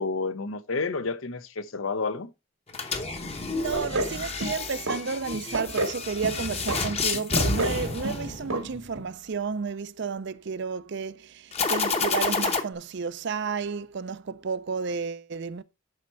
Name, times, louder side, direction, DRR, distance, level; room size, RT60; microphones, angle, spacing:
voice 1, 0.0-2.3, left 4 dB, 65° left, 0.8 m, -30 dB
sound 1, 2.7-8.9 11.5-12.6, left 4 dB, 30° left, 0.9 m, -29 dB
voice 2, 3.3-15.6, right 5 dB, 55° right, 0.5 m, -32 dB
sound 2, 3.7-4.1 4.4-5.0 5.3-6.0 6.2-6.8 7.1-7.8 8.0-8.2 8.5-8.6 8.9-9.0, right 2 dB, 80° right, 1.8 m, -29 dB
11.0 x 4.3 x 4.5 m
head